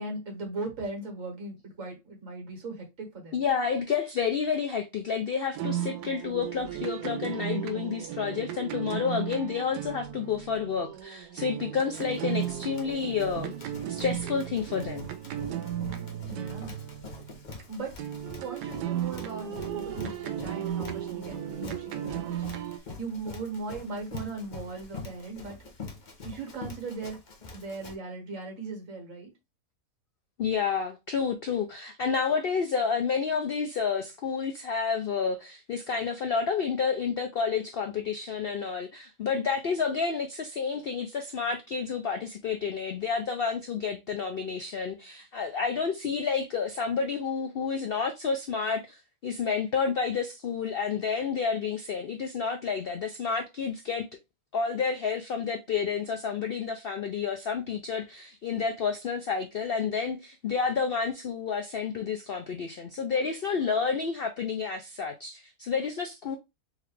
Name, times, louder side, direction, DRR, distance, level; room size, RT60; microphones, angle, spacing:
voice 1, 0.0-3.4 16.2-16.7 17.7-18.0 18.4-22.5 23.0-25.6 26.2-27.2 27.5-29.3, right 3 dB, 55° right, 1.8 m, -38 dB
voice 2, 3.3-15.1 30.4-54.0 54.5-66.4, left 6 dB, 85° left, 0.5 m, -30 dB
sound 1, 5.5-17.6 18.0-22.8, right 10 dB, 90° right, 1.2 m, -35 dB
Run, 11.8-27.9, left 3 dB, 40° left, 0.7 m, -45 dB
3.6 x 3.2 x 3.3 m
omnidirectional pair, 1.7 m